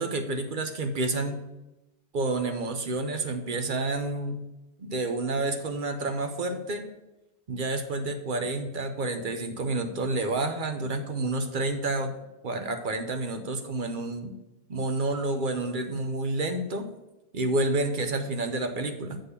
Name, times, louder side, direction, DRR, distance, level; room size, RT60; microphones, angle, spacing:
voice 1, 0.0-1.4 2.1-4.4 4.8-6.8 7.5-12.1 12.4-14.3 14.7-16.8 17.3-19.2, right 2 dB, 55° right, 6 dB, 0.9 m, -29 dB
8.2 x 3.9 x 6.6 m, 0.98 s
omnidirectional pair, 1.1 m